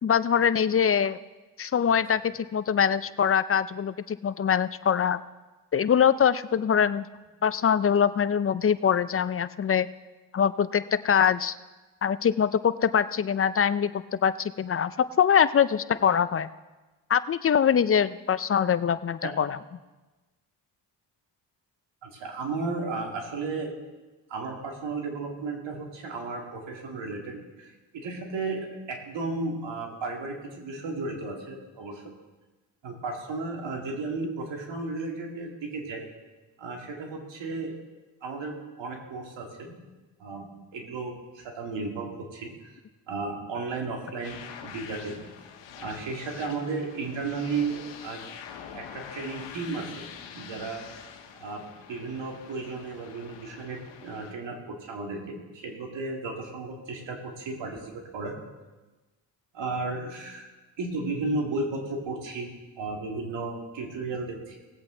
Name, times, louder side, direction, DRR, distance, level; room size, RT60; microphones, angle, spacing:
voice 1, 0.0-1.2 1.6-5.2 5.7-7.1 7.4-9.9 10.3-11.5 12.0-16.5 17.1-19.6, left 8 dB, 35° left, 15 dB, 0.4 m, -23 dB
voice 2, 22.0-23.7 24.3-32.1 32.8-36.1 36.6-37.8 38.2-39.7 40.2-40.5 40.7-42.7 43.1-45.2 45.8-48.2 48.7-50.1 50.3-50.8 51.3-51.6 51.9-58.3 59.5-60.5 60.8-62.5 62.8-64.6, right 3 dB, 80° right, 1 dB, 2.4 m, -34 dB
sound 1, 44.2-54.3, left 8 dB, 85° left, 1.2 m, -45 dB
19.0 x 8.1 x 3.8 m, 1.2 s
cardioid pair, 70°, 43 cm